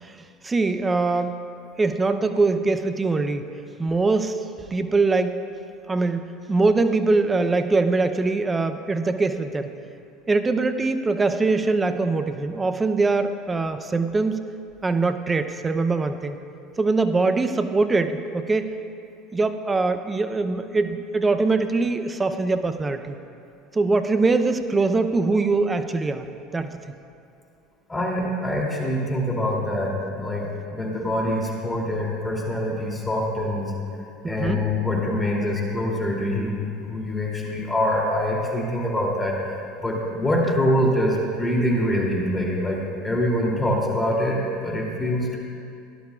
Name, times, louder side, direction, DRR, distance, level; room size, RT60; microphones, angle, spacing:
voice 1, 0.0-1.4 1.8-3.5 3.8-4.4 4.7-5.4 5.9-9.7 10.3-14.4 14.8-16.4 16.8-18.7 19.3-23.2 23.7-26.3 26.5-26.8 34.2-34.6, right 3 dB, 20° right, 8 dB, 0.7 m, -22 dB
voice 2, 27.9-33.7 34.3-45.4, left 1 dB, 15° left, -2 dB, 2.9 m, -24 dB
17.5 x 11.5 x 2.4 m, 2.5 s
hypercardioid pair, 75°, 0 cm